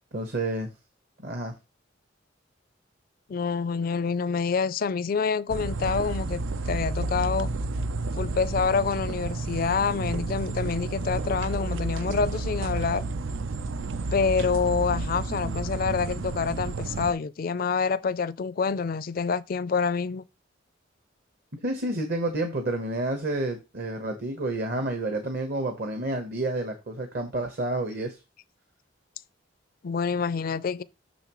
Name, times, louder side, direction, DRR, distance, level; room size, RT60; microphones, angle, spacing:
voice 1, 0.1-0.7 1.2-1.5 21.6-28.2, right 2 dB, 55° right, 1.1 m, -29 dB
voice 2, 3.3-7.5 8.2-13.0 14.1-20.2 29.8-30.8, left 5 dB, 50° left, 0.4 m, -27 dB
sound 1, 5.5-17.1, right 3 dB, 85° right, 0.5 m, -31 dB
6.9 x 6.2 x 3.0 m
head